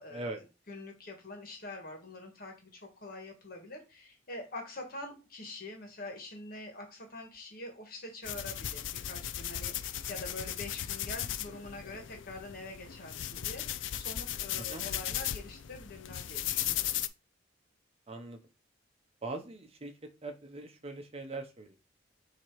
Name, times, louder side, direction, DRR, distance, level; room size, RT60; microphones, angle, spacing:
voice 1, 0.0-16.9, left 2 dB, 45° left, 3 dB, 1.7 m, -45 dB
sound 1, 8.2-17.1, left 11 dB, 70° left, 0.4 m, -37 dB
voice 2, 14.6-14.9 18.1-18.4 19.2-19.9 20.2-21.8, right 2 dB, 30° right, 5 dB, 0.9 m, -41 dB
7.2 x 3.0 x 4.8 m, 0.30 s
head